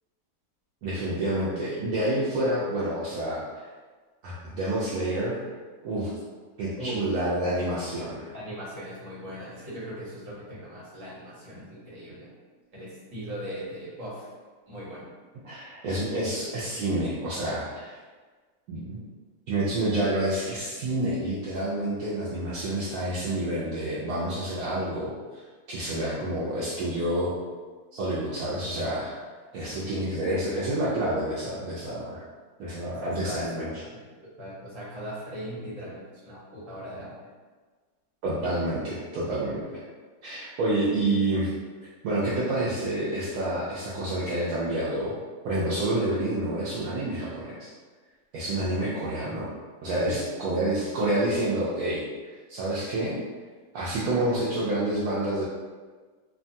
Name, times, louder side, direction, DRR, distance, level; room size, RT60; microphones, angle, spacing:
voice 1, 0.8-3.6 4.2-5.4 5.8-6.1 6.6-8.3 15.4-18.0 18.7-19.0 19.5-25.1 25.7-27.3 27.9-29.1 29.5-32.2 32.6-33.7 38.2-39.8 40.2-41.5 42.0-45.1 45.4-47.7 48.3-49.5 49.8-52.0 52.5-53.2 53.7-55.5, right 1 dB, 70° right, -8 dB, 0.9 m, -28 dB
voice 2, 8.3-12.3 12.7-14.3 14.7-15.1 29.7-29.9 33.0-33.4 33.8-34.1 34.4-37.1 50.0-50.2, equal, 50° right, -8 dB, 1.3 m, -39 dB
2.9 x 2.2 x 2.6 m, 1.4 s
omnidirectional pair, 1.9 m